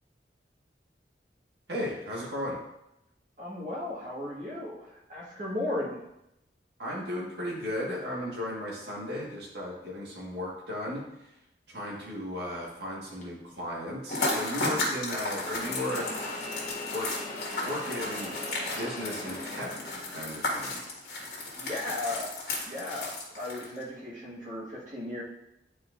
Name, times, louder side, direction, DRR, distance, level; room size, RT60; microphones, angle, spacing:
voice 1, 1.7-2.6 6.8-11.0 11.7-16.1 16.9-17.3 17.6-18.4 18.8-20.8, left 1 dB, 70° right, -5 dB, 1.7 m, -35 dB
voice 2, 3.4-6.0 21.5-25.2, left 1 dB, 45° right, -7 dB, 1.7 m, -36 dB
sound 1, 13.2-13.3 15.3-20.4 20.7-21.5 22.2-22.4 23.4-23.5, left 2 dB, 40° left, 1.1 m, -40 dB
sound 2, 14.1-23.8, left 2 dB, 60° left, 1.8 m, -34 dB
10.0 x 4.3 x 2.6 m, 0.85 s
head